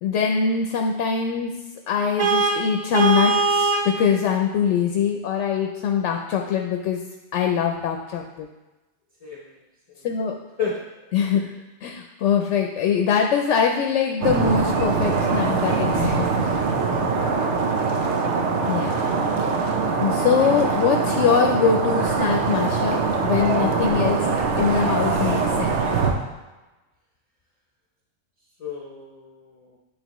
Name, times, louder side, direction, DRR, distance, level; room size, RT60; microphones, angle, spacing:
voice 1, 0.0-1.5 1.9-7.0 7.3-8.5 10.0-10.3 11.1-11.4 11.8-16.3 18.7-19.1 20.0-24.3 24.6-25.9, left 7 dB, 90° left, 3 dB, 0.9 m, -23 dB
Vehicle horn car horn honking, 2.2-4.0, right 4 dB, 50° right, 0.3 m, -21 dB
voice 2, 10.6-11.1 17.1-17.6 28.6-29.8, left 5 dB, 40° left, -3 dB, 0.7 m, -33 dB
sound 1, 14.2-26.1, right 4 dB, 75° right, 1.0 m, -23 dB
9.2 x 3.4 x 3.0 m, 1.1 s
omnidirectional pair, 1.2 m